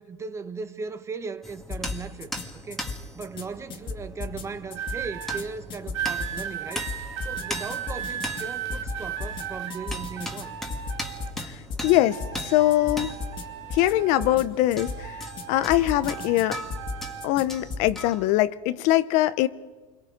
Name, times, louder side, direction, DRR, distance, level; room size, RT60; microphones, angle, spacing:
voice 1, 0.0-6.9 7.2-10.5, right 4 dB, 20° right, 1.2 m, -38 dB
sound 1, 1.4-18.3, equal, ahead, 2.0 m, -39 dB
sound 2, 1.7-2.4 2.7-3.4 3.7-4.4 4.7-5.4 5.7-6.4 6.7-7.4 7.7-8.4 8.7-9.4 9.7-10.4 10.7-11.4 11.7-11.9 12.2-12.4 12.7-13.4 13.7-13.9 14.2-14.4 14.7-15.4 15.7-16.4 16.7-17.4 17.7-17.9, left 4 dB, 30° left, 2.3 m, -35 dB
sound 3, 4.7-5.4 5.9-11.5 11.8-14.5 14.8-17.3 18.1-18.4, right 9 dB, 85° right, 2.0 m, -36 dB
voice 2, 11.4-13.1 13.7-16.6 17.2-19.5, left 15 dB, 55° left, 0.8 m, -23 dB
28.0 x 22.5 x 5.1 m
supercardioid pair, 125°, 15 cm